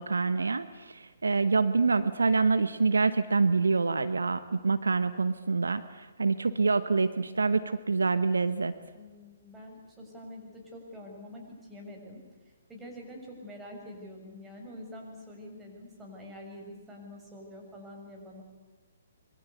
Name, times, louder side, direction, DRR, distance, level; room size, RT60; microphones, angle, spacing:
voice 1, 0.0-8.7, right 4 dB, 75° right, 13 dB, 1.0 m, -26 dB
voice 2, 8.9-12.2 12.7-18.4, left 1 dB, 10° right, 0 dB, 6.6 m, -46 dB
26.0 x 23.0 x 8.3 m, 1.3 s
figure-of-eight pair, 125°, 0 cm